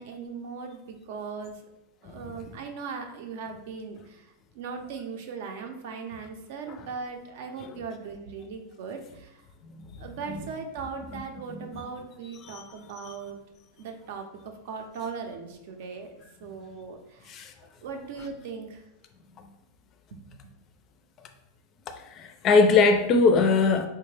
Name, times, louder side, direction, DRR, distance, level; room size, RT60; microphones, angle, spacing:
voice 1, 0.0-1.6 2.0-9.4 10.0-13.4 13.8-16.1 16.4-17.3 17.8-18.8 20.1-20.2, right 5 dB, 65° right, 4 dB, 0.6 m, -38 dB
voice 2, 21.9-23.9, left 4 dB, 30° left, 7 dB, 0.4 m, -21 dB
4.4 x 2.1 x 3.2 m, 0.91 s
supercardioid pair, 145°, 0 cm